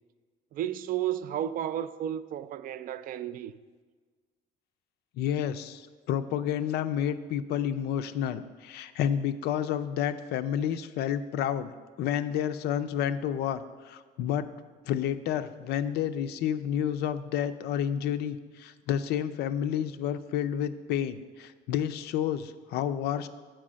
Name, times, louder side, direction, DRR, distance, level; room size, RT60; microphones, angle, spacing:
voice 1, 0.5-3.5, right 11 dB, 55° right, 0.4 m, -32 dB
voice 2, 5.2-14.5 14.9-23.3, left 9 dB, 75° left, 0.4 m, -30 dB
7.5 x 4.7 x 6.2 m
cardioid pair, 110°, 17 cm